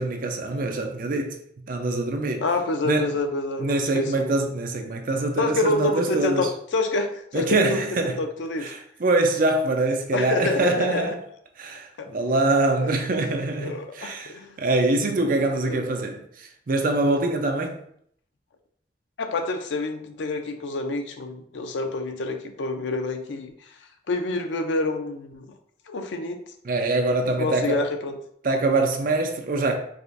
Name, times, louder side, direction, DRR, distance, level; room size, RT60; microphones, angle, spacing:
voice 1, 0.0-1.4 1.7-2.4 2.8-3.1 3.6-6.5 7.3-8.2 8.6-11.2 11.6-17.8 26.6-27.8 28.4-29.8, right 2 dB, 50° right, 0.5 m, -24 dB
voice 2, 2.4-4.3 5.4-8.7 10.1-11.1 12.0-12.1 12.8-13.0 13.6-14.6 15.6-15.8 19.2-23.5 24.1-25.5 25.9-26.4 27.4-28.2, left 2 dB, 90° left, 0.5 m, -27 dB
4.8 x 2.5 x 2.5 m
head